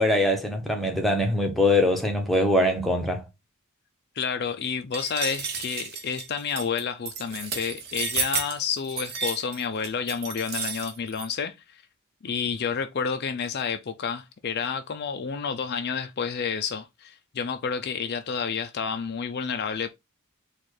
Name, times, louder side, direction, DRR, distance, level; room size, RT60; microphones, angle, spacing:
voice 1, 0.0-3.2, left 1 dB, ahead, 0.8 m, -22 dB
voice 2, 4.2-11.8 12.2-19.9, left 6 dB, 45° left, 0.4 m, -30 dB
sound 1, 4.9-11.3, right 5 dB, 45° right, 1.0 m, -32 dB
4.3 x 2.4 x 4.6 m
head